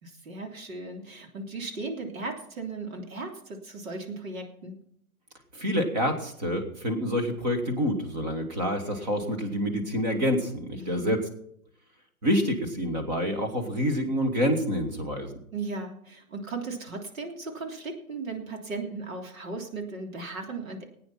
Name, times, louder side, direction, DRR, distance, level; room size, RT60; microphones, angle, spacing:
voice 1, 0.0-4.8 10.8-11.2 15.5-20.9, right 3 dB, 65° right, 2 dB, 3.4 m, -36 dB
voice 2, 5.5-11.2 12.2-15.3, equal, 30° right, 6 dB, 2.1 m, -27 dB
19.0 x 9.2 x 5.7 m, 0.71 s
hypercardioid pair, 170°, 43 cm